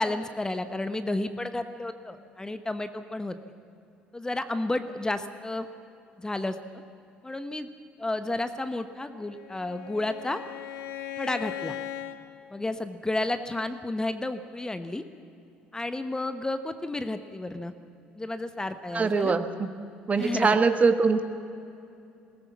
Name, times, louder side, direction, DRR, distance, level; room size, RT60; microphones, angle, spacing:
voice 1, 0.0-3.4 4.1-5.7 6.2-6.8 7.2-7.7 8.0-10.4 11.2-11.8 12.5-15.0 15.7-17.7 18.2-19.4 20.1-20.6, left 2 dB, 15° left, 10 dB, 1.1 m, -31 dB
Bowed string instrument, 9.0-12.2, left 11 dB, 60° left, 1.1 m, -38 dB
voice 2, 18.9-19.7 20.1-21.2, right 4 dB, 30° right, 9 dB, 1.3 m, -23 dB
21.5 x 18.5 x 7.4 m, 2.6 s
figure-of-eight pair, 55°, 5 cm